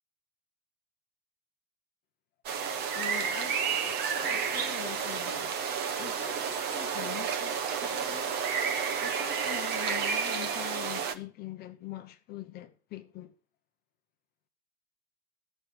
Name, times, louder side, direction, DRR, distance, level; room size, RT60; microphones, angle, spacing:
sound 1, 2.5-11.1, right 6 dB, 20° right, 0.9 m, -31 dB
voice 1, 2.9-5.6 6.0-8.5 9.0-13.3, left 13 dB, 20° left, 1.0 m, -44 dB
15.5 x 6.6 x 7.9 m
supercardioid pair, 175°, 47 cm